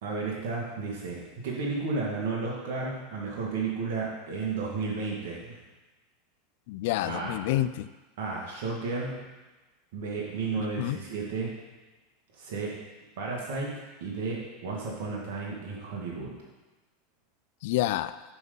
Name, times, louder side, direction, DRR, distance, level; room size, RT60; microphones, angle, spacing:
voice 1, 0.0-5.6 7.0-7.3 8.2-9.2 9.9-11.5 12.3-12.7 13.2-16.4, right 4 dB, 70° right, -3 dB, 2.1 m, -33 dB
voice 2, 6.7-7.9 10.6-11.0 17.6-18.1, left 14 dB, 70° left, 14 dB, 0.4 m, -28 dB
11.0 x 3.9 x 5.4 m, 1.2 s
hypercardioid pair, 105°, 0 cm